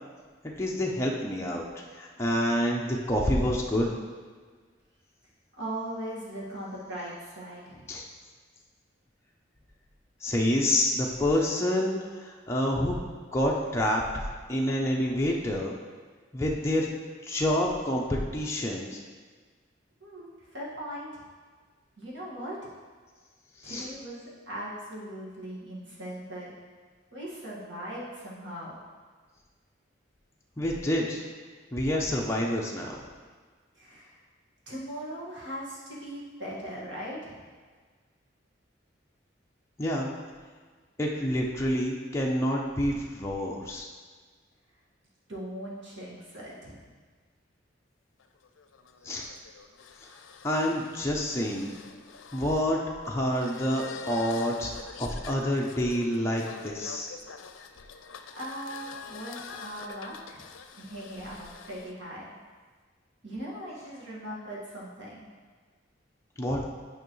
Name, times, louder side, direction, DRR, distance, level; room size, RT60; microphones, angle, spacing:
voice 1, 0.6-1.6 1.9-3.9 7.9-8.0 10.2-13.0 13.3-14.2 14.5-15.8 16.3-16.9 17.2-19.0 23.6-23.9 30.6-31.3 31.7-33.0 39.8-40.1 41.0-43.9 49.0-49.3 50.4-51.8 52.3-52.8 53.1-57.1 66.4-66.7, left 1 dB, 15° left, -3 dB, 0.6 m, -28 dB
voice 2, 5.6-8.0 20.0-21.2 21.9-22.7 23.6-26.5 27.1-28.8 33.7-34.2 34.7-37.4 45.3-46.8 58.3-60.5 60.8-62.3 63.2-65.3, right 1 dB, 70° right, -6 dB, 1.8 m, -39 dB
sound 1, 48.2-61.9, left 5 dB, 85° left, 0.5 m, -46 dB
9.1 x 5.4 x 3.1 m, 1.5 s
head